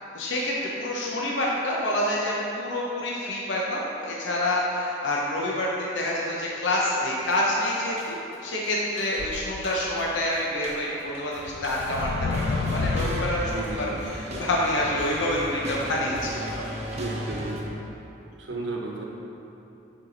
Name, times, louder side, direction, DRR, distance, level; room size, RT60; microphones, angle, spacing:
voice 1, 0.1-13.9 14.4-16.7, left 1 dB, 85° left, -4 dB, 0.8 m, -27 dB
sound 1, 7.3-7.5 8.0-8.5 8.8-10.2 10.5-17.6, equal, 35° right, 0.8 m, -36 dB
sound 2, 9.2-10.1 10.7-10.8 11.4-13.9, left 4 dB, 60° left, 0.3 m, -30 dB
voice 2, 13.5-14.0 16.9-17.8 18.4-19.0, right 2 dB, 80° right, -1 dB, 1.0 m, -34 dB
6.9 x 4.7 x 4.0 m, 3.0 s
head